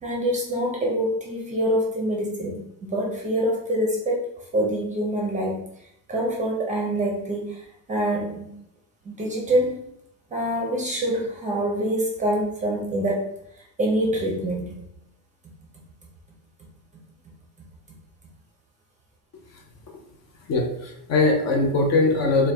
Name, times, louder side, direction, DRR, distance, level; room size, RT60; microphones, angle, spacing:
voice 1, 0.0-2.6 2.9-5.6 6.1-8.6 9.0-9.8 10.3-13.3 13.8-14.8, right 1 dB, 20° right, -1 dB, 0.6 m, -25 dB
voice 2, 20.5-22.5, left 3 dB, 40° left, 1 dB, 0.7 m, -21 dB
4.5 x 2.3 x 3.3 m, 0.78 s
cardioid pair, 155°, 41 cm